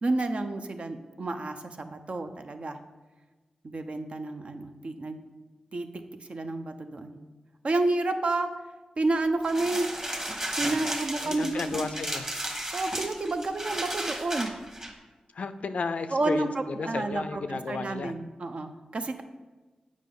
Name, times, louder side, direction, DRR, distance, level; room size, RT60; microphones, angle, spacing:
voice 1, 0.0-2.8 3.6-5.2 5.7-5.9 6.3-7.2 7.6-8.5 9.0-9.9 10.6-11.9 12.7-14.5 16.1-16.5 16.8-19.2, right 2 dB, 50° right, 7 dB, 0.6 m, -30 dB
sound 1, 9.4-14.9, right 1 dB, 25° right, 1.3 m, -34 dB
voice 2, 11.2-12.3 15.3-18.1, left 4 dB, 65° left, 10 dB, 0.4 m, -33 dB
7.4 x 5.1 x 3.8 m, 1.2 s
cardioid pair, 55°, 2 cm